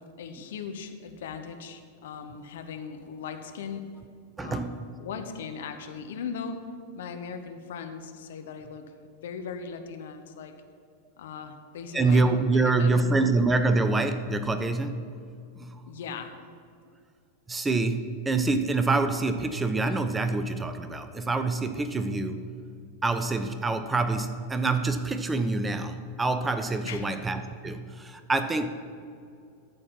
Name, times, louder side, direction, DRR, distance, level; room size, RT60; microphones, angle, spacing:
voice 1, 0.0-3.8 4.4-6.6 6.9-8.8 9.2-10.5 11.2-13.3 15.8-16.3 26.8-27.1, left 6 dB, 60° left, 7 dB, 0.9 m, -39 dB
voice 2, 4.4-4.8 11.9-15.1 15.5-15.8 17.5-22.5 23.0-28.7, right 3 dB, 15° right, 9 dB, 0.6 m, -26 dB
12.5 x 4.5 x 7.3 m, 2.3 s
figure-of-eight pair, 90°, 0 cm